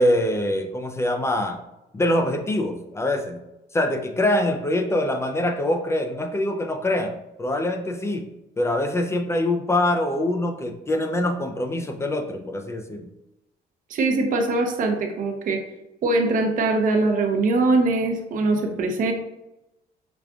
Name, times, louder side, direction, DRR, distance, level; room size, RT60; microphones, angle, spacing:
voice 1, 0.0-1.6 1.9-3.4 3.7-8.2 8.6-13.1, left 1 dB, 15° left, 4 dB, 0.3 m, -24 dB
voice 2, 13.9-15.6 16.0-19.1, right 3 dB, 50° right, 3 dB, 0.7 m, -22 dB
4.9 x 2.4 x 2.3 m, 0.93 s
cardioid pair, 110°, 17 cm